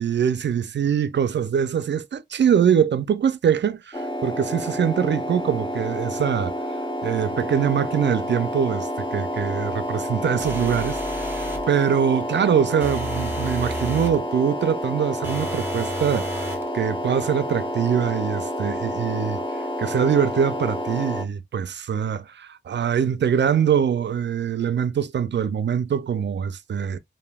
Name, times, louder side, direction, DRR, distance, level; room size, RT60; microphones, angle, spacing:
voice 1, 0.0-6.5 7.0-19.4 19.8-27.0, right 8 dB, 70° right, 0.4 m, -23 dB
sound 1, 3.9-21.2, equal, 25° left, 0.8 m, -29 dB
sound 2, 10.4-11.7 12.8-14.2 15.2-16.7, right 1 dB, 10° right, 1.2 m, -32 dB
3.3 x 2.6 x 2.3 m
cardioid pair, 45°, 19 cm